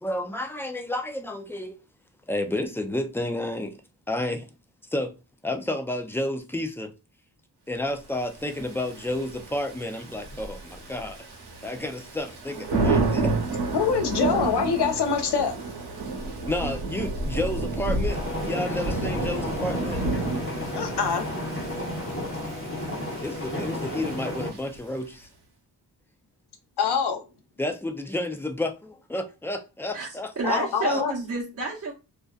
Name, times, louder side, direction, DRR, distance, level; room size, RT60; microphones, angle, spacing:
voice 1, 0.0-1.8 2.3-3.8 4.1-4.5 4.9-5.1 5.4-6.9 7.7-11.2 11.6-13.3 16.5-18.2 18.5-20.0 23.2-25.3 27.6-31.0, left 1 dB, 5° left, 0.4 m, -31 dB
Thunder / Rain, 8.4-25.0, right 3 dB, 70° right, 1.0 m, -31 dB
voice 2, 13.7-15.5 20.8-21.3 26.8-27.2 30.4-31.1, left 6 dB, 70° left, 0.7 m, -24 dB
sound 1, 18.1-24.5, left 1 dB, 30° left, 1.1 m, -32 dB
voice 3, 29.9-31.9, right 4 dB, 35° right, 0.8 m, -30 dB
2.5 x 2.2 x 2.3 m
cardioid pair, 60°, 42 cm